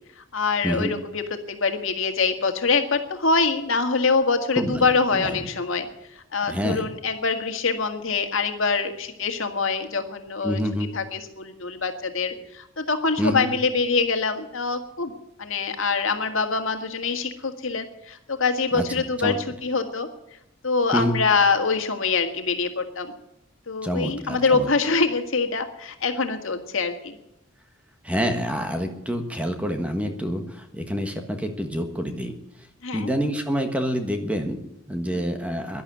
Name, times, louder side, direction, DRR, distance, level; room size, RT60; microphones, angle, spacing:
voice 1, 0.2-5.9 6.1-10.6 10.9-15.1 15.4-20.1 20.6-23.1 23.7-27.1 32.8-33.1 35.0-35.2, left 4 dB, 75° left, 6 dB, 1.8 m, -24 dB
voice 2, 4.6-4.9 5.1-5.4 6.5-6.8 10.4-10.9 13.2-13.5 18.7-19.4 20.9-21.2 23.8-24.7 28.0-32.3 32.9-35.8, equal, 5° right, 5 dB, 1.5 m, -27 dB
12.0 x 11.0 x 9.1 m, 0.88 s
head